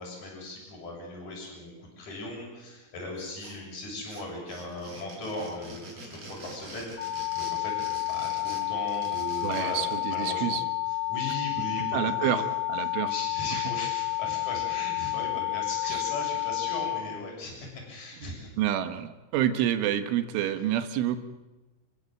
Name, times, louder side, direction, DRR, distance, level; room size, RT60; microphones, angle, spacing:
voice 1, 0.0-9.8 10.1-10.6 10.9-12.3 13.0-18.5, left 2 dB, 35° left, 0 dB, 8.2 m, -38 dB
sound 1, 3.2-3.8 4.1-10.0, right 2 dB, 30° right, 6.7 m, -45 dB
sound 2, 7.0-17.0, left 18 dB, 80° left, 6.9 m, -30 dB
voice 2, 9.4-10.6 11.9-12.4 12.7-13.1 13.5-13.6 15.9-16.0 18.2-21.2, right 11 dB, 75° right, 9 dB, 3.7 m, -28 dB
30.0 x 16.0 x 7.8 m, 1.1 s
omnidirectional pair, 5.9 m